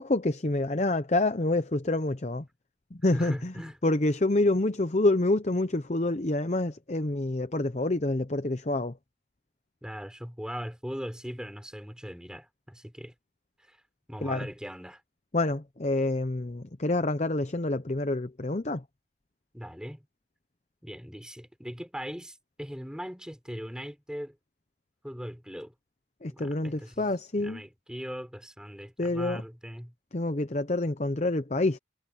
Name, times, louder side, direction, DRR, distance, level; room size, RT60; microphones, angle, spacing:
voice 1, 0.0-2.4 2.9-3.5 3.8-8.9 14.2-14.5 15.3-18.8 26.2-27.6 29.0-29.4 30.1-31.8, left 2 dB, 35° left, 0.8 m, -27 dB
voice 2, 3.1-3.8 9.8-13.1 13.6-13.8 14.1-15.0 19.5-20.1 20.8-24.4 25.0-25.7 26.3-27.1 27.4-29.9, equal, 5° right, 5.7 m, -40 dB
head